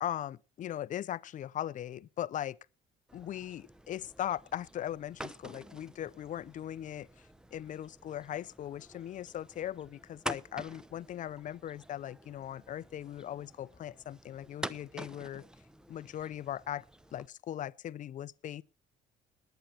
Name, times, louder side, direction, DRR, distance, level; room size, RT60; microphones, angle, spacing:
voice 1, 0.0-2.6 3.1-7.1 7.5-15.4 15.9-16.8 17.1-18.6, left 11 dB, 50° left, 0.6 m, -39 dB
sound 1, 3.1-17.3, right 1 dB, 5° right, 0.7 m, -48 dB
19.5 x 9.2 x 4.3 m
cardioid pair, 110°, 17 cm